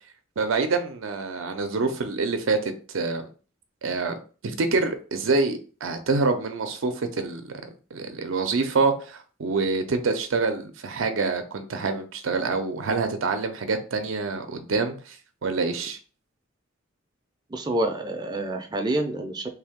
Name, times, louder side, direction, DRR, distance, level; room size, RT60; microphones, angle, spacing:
voice 1, 0.4-3.3 3.8-4.1 4.4-7.4 7.9-15.2 15.4-16.0, right 4 dB, 80° right, 0.5 m, -26 dB
voice 2, 17.5-19.5, right 1 dB, 20° right, 0.5 m, -27 dB
3.4 x 2.7 x 3.6 m
head